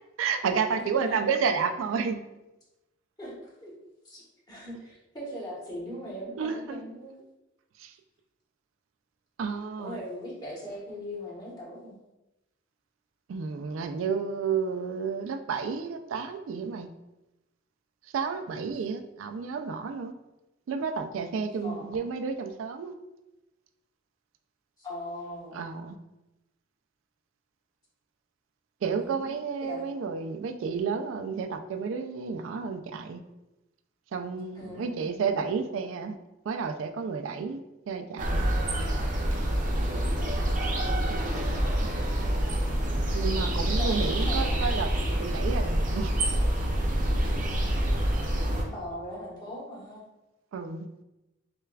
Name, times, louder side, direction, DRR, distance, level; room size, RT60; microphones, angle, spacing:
voice 1, 0.2-2.2 6.4-6.8 7.8-7.9 9.4-10.0 13.3-16.9 18.1-20.1 20.7-22.9 25.5-26.0 28.8-33.2 34.1-36.2 36.5-37.6 37.9-38.4 43.1-44.9 45.2-46.1 50.5-50.9, right 5 dB, 85° right, 7 dB, 0.3 m, -31 dB
voice 2, 0.7-1.3 3.2-3.7 4.0-7.1 9.8-11.9 21.6-22.0 24.8-25.7 29.0-29.3 29.6-29.9 34.5-35.2 40.8-41.2 43.8-44.6 47.1-47.6 48.7-50.0, left 1 dB, 20° left, -6 dB, 1.1 m, -40 dB
sound 1, 38.2-48.6, right 1 dB, 40° right, 0.6 m, -27 dB
6.4 x 2.3 x 2.3 m, 0.98 s
head